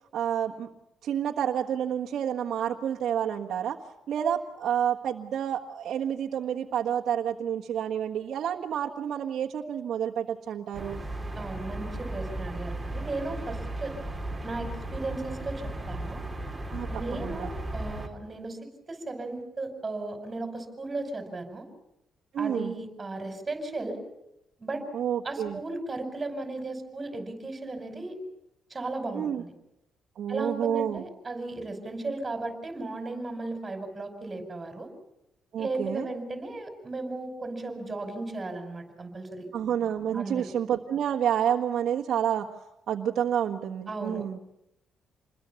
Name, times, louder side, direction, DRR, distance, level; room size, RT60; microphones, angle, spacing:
voice 1, 0.1-0.7 1.0-3.8 4.1-11.0 16.7-16.9 17.2-17.5 22.3-22.7 24.9-25.6 29.1-29.4 30.1-31.0 35.5-36.1 39.5-42.5 42.9-44.4, right 9 dB, 65° right, -2 dB, 1.5 m, -29 dB
sound 1, 10.7-18.1, right 1 dB, 5° right, 3.6 m, -36 dB
voice 2, 11.3-13.9 14.4-16.2 16.9-18.6 18.9-21.7 22.4-24.0 24.6-24.8 25.2-28.2 28.7-29.5 30.3-34.9 35.6-39.5 40.1-40.5 43.9-44.2, right 2 dB, 25° right, 4 dB, 5.5 m, -35 dB
27.5 x 21.0 x 7.1 m, 0.87 s
cardioid pair, 90°, 0 cm